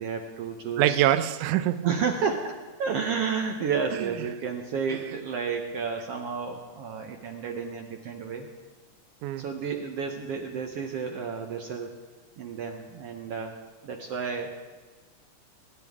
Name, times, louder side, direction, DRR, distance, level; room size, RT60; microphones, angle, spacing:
voice 1, 0.0-1.0 1.8-8.5 9.4-11.9 12.4-13.5 13.8-14.5, right 6 dB, 65° right, 1.6 m, -31 dB
voice 2, 0.8-1.9 3.9-4.1 4.9-5.0 9.2-9.5, right 13 dB, 85° right, 2.1 m, -24 dB
20.0 x 10.5 x 3.6 m
omnidirectional pair, 3.5 m